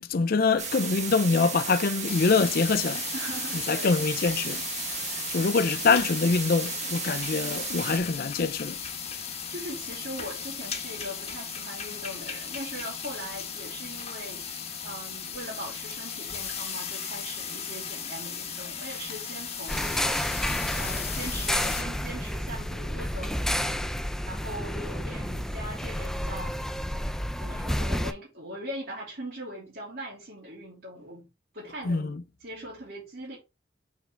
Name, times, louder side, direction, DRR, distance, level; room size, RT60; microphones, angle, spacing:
voice 1, 0.0-3.0 3.7-4.6 5.3-8.8 31.8-32.2, left 4 dB, 55° left, 0.5 m, -24 dB
sound 1, 0.6-8.0, right 5 dB, 40° right, 1.7 m, -34 dB
sound 2, 2.0-21.8, left 7 dB, 35° left, 1.3 m, -36 dB
voice 2, 3.1-4.0 5.1-5.3 9.5-14.5 14.8-20.2 20.8-23.9 24.3-26.6 27.4-31.3 31.5-32.1 32.4-33.4, right 1 dB, 60° right, 3.0 m, -40 dB
sound 3, 19.7-28.1, equal, 5° left, 0.4 m, -30 dB
7.2 x 4.6 x 3.3 m
head